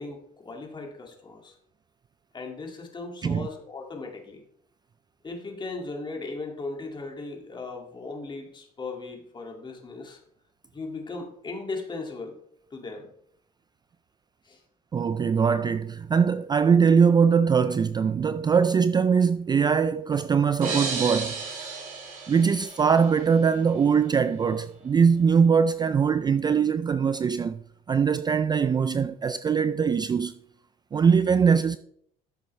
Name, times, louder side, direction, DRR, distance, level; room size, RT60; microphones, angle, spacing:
voice 1, 0.0-1.6 2.3-4.4 5.2-10.2 10.7-12.4 12.7-13.1 14.4-14.6, left 3 dB, 25° left, 2.1 m, -37 dB
voice 2, 14.9-21.7 22.3-27.6 27.9-30.3 30.9-31.8, right 6 dB, 25° right, 0.3 m, -22 dB
sound 1, 20.6-23.4, right 4 dB, 55° right, 3.7 m, -33 dB
13.0 x 7.0 x 3.2 m
cardioid pair, 110°, 17 cm